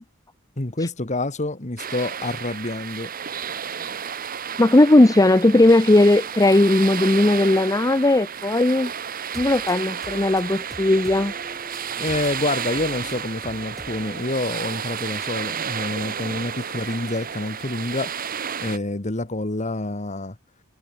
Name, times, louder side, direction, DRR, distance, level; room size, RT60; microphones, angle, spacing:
voice 1, 0.6-3.1 12.0-18.3 18.6-20.4, left 2 dB, 35° left, 1.8 m, -27 dB
sound 1, 1.8-18.8, right 7 dB, 45° right, 1.3 m, -32 dB
voice 2, 4.6-8.9 9.4-11.3, left 2 dB, 20° left, 0.6 m, -17 dB
sound 2, 9.1-14.2, equal, ahead, 4.8 m, -45 dB
head